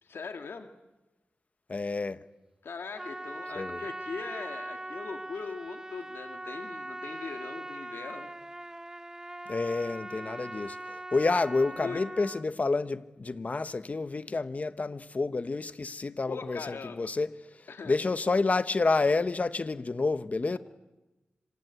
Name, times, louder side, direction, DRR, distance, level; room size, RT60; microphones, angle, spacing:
voice 1, 0.0-0.7 2.6-8.3 11.8-12.0 16.3-17.1 17.7-18.0, left 4 dB, 85° left, 2.1 m, -40 dB
voice 2, 1.7-2.2 3.5-3.8 9.5-17.3 17.5-20.6, left 3 dB, 40° left, 1.1 m, -29 dB
Trumpet, 3.0-12.5, right 1 dB, 15° right, 1.1 m, -41 dB
26.5 x 26.5 x 8.3 m
wide cardioid pair, 130°, 4 cm